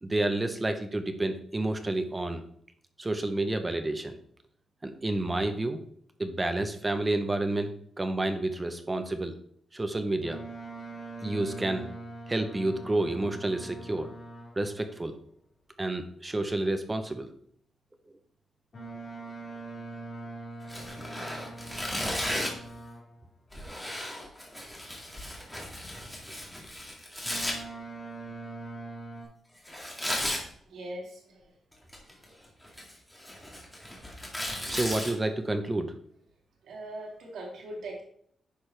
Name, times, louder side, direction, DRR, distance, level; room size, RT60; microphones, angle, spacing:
voice 1, 0.0-2.4 3.0-4.2 4.8-5.8 6.2-9.4 9.7-10.4 11.2-11.9 12.3-14.1 14.6-15.2 15.8-17.3 34.7-35.9, right 2 dB, 15° right, 8 dB, 0.7 m, -30 dB
Boat Water vehicle, 10.2-14.8 18.7-23.3 27.2-29.2, right 2 dB, 40° left, 3.8 m, -42 dB
Tearing, 20.6-22.7 23.5-27.5 29.7-30.4 31.7-32.2 32.6-35.1, left 1 dB, 5° left, 2.0 m, -35 dB
voice 2, 30.7-31.6 32.2-32.4 32.6-32.8 33.5-34.0 36.6-38.0, right 1 dB, 85° right, -2 dB, 2.5 m, -42 dB
10.0 x 6.5 x 3.3 m, 0.64 s
wide cardioid pair, 145°, 0 cm